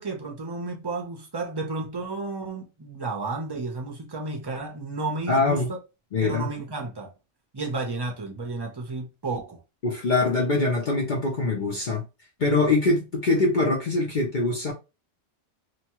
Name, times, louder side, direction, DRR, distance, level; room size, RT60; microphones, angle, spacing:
voice 1, 0.0-5.8 6.2-7.1 7.5-9.6, right 3 dB, 30° right, 0.5 m, -32 dB
voice 2, 5.3-5.7 6.1-6.5 9.8-12.0 12.4-14.7, left 2 dB, 50° left, 0.7 m, -23 dB
2.9 x 2.2 x 2.9 m
omnidirectional pair, 1.2 m